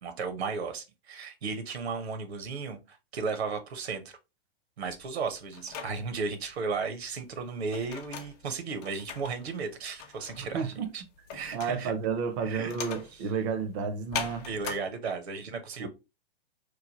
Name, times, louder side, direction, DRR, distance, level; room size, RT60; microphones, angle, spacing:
voice 1, 0.0-4.2 4.8-11.0 11.3-11.9 12.4-12.7 14.4-15.9, right 4 dB, 80° right, 0.8 m, -35 dB
sound 1, 4.8-14.8, left 6 dB, 40° left, 0.6 m, -41 dB
voice 2, 10.4-10.9 11.5-14.5 15.8-15.9, right 6 dB, 30° right, 0.4 m, -31 dB
3.0 x 2.2 x 2.8 m
hypercardioid pair, 130°, 32 cm